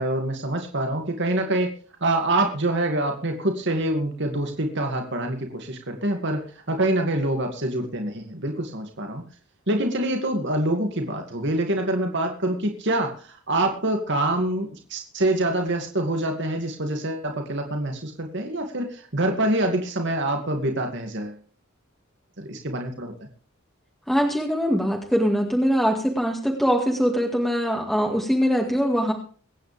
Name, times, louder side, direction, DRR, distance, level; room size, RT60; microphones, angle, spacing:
voice 1, 0.0-1.7 2.0-9.2 9.7-21.4 22.4-23.1, right 1 dB, 60° right, 3 dB, 2.4 m, -25 dB
voice 2, 24.1-29.1, equal, ahead, 0 dB, 2.1 m, -22 dB
24.0 x 9.7 x 3.5 m, 0.42 s
head